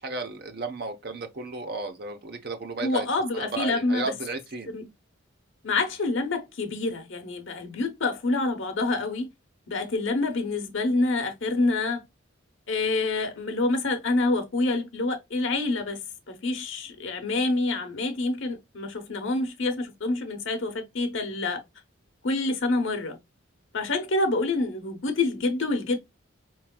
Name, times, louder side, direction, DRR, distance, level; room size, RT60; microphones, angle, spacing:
voice 1, 0.0-3.1 3.3-4.7, right 3 dB, 50° right, 0.8 m, -33 dB
voice 2, 2.8-4.1 4.7-4.9 5.6-9.3 9.7-12.0 12.7-16.0 16.3-21.6 22.2-23.2 23.7-26.0, left 2 dB, 65° left, 0.9 m, -27 dB
4.5 x 3.1 x 2.2 m
head